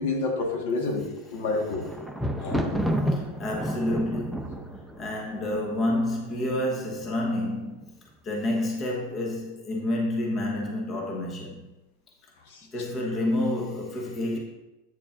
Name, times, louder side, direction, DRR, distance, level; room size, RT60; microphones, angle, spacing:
voice 1, 0.0-1.9 2.4-2.6 12.5-12.7, left 3 dB, 65° left, 1.4 m, -29 dB
Thunder, 1.2-6.3 7.0-7.5 7.8-7.9, equal, ahead, 0.6 m, -30 dB
voice 2, 3.1-4.7 5.0-7.9 8.2-11.7 12.7-14.4, left 1 dB, 25° left, 1.2 m, -29 dB
8.7 x 6.8 x 2.5 m
supercardioid pair, 145°, 0 cm